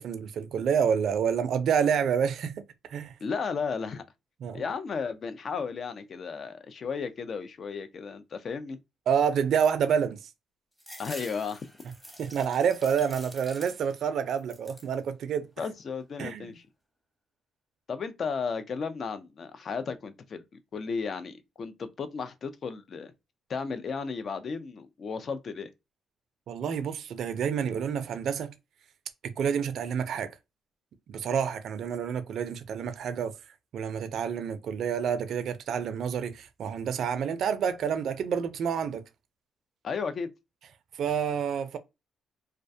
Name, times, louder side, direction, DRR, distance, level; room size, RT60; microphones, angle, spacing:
voice 1, 0.0-2.5 2.9-3.1 4.4-4.6 9.1-10.2 12.2-15.5 16.2-16.5 26.5-28.5 29.2-30.3 31.1-33.3 33.7-39.0 41.0-41.8, right 7 dB, 70° right, 0.4 m, -28 dB
voice 2, 3.2-4.0 4.5-8.8 11.0-11.7 15.6-16.6 17.9-20.4 20.7-23.1 23.5-25.7 39.8-40.3, left 5 dB, 50° left, 0.4 m, -34 dB
sound 1, 10.8-14.1 14.4-15.0 15.4-16.2, equal, 10° left, 0.9 m, -47 dB
2.3 x 2.1 x 2.6 m
cardioid pair, 90°, 0 cm